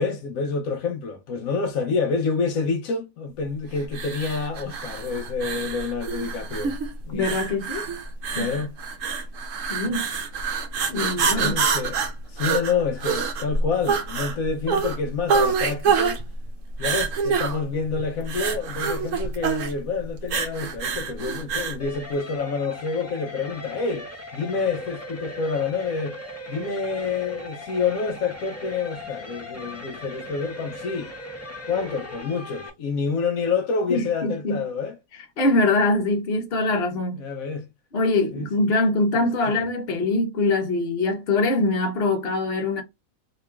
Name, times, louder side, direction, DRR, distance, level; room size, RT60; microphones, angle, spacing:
voice 1, 0.0-6.8 7.1-7.3 8.3-8.7 11.1-12.0 12.3-16.2 16.8-26.2 26.5-31.1 31.7-34.9 37.2-37.7 38.3-38.5 39.2-39.6, left 5 dB, 75° left, 1.0 m, -28 dB
sound 1, 3.9-21.8, right 5 dB, 65° right, 1.0 m, -26 dB
voice 2, 7.1-7.9 8.4-8.5 9.7-10.0 10.9-11.6 33.9-34.6 35.4-37.2 37.9-42.8, left 2 dB, 50° left, 1.1 m, -23 dB
sound 2, 21.8-32.7, left 1 dB, 15° left, 0.5 m, -38 dB
2.9 x 2.9 x 3.3 m
omnidirectional pair, 1.5 m